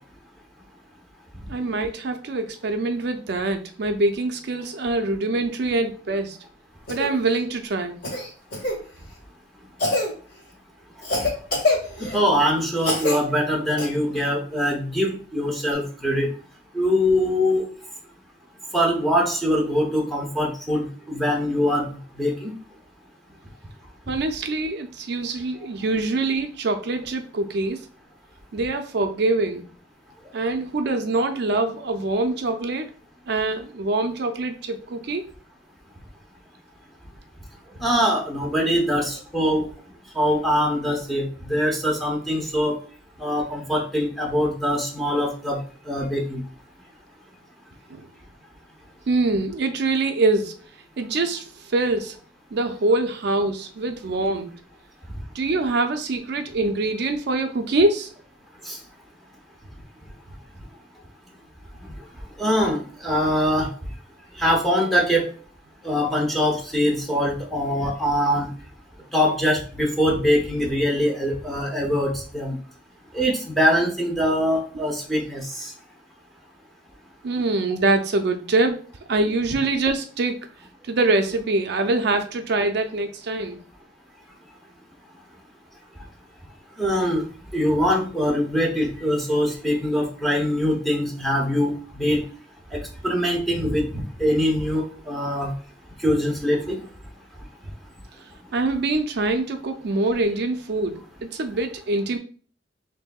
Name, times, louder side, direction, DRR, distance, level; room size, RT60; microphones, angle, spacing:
voice 1, 1.5-6.4 6.9-8.0 24.1-27.8 28.5-29.7 30.3-32.9 33.3-35.2 47.9-48.1 49.1-50.5 51.0-52.2 52.5-54.6 55.3-58.1 77.2-78.8 79.1-80.4 80.9-83.6 98.5-102.2, right 2 dB, 60° right, 6 dB, 0.4 m, -24 dB
Cough, 6.9-7.1 8.0-8.8 9.8-10.1 11.0-12.2 12.8-13.2 13.8-13.9 15.7-15.8, left 2 dB, 50° left, 1.7 m, -24 dB
voice 2, 12.0-16.3 16.7-17.6 18.7-21.9 22.2-22.5 37.8-39.7 40.1-42.8 43.2-45.6 45.9-46.4 58.7-58.8 62.4-63.7 64.4-65.2 65.8-68.5 69.1-72.6 73.1-75.7 86.8-87.2 87.5-92.2 92.7-93.9 94.2-95.5 96.0-96.8, equal, ahead, -2 dB, 0.9 m, -23 dB
6.3 x 2.7 x 2.3 m, 0.42 s
head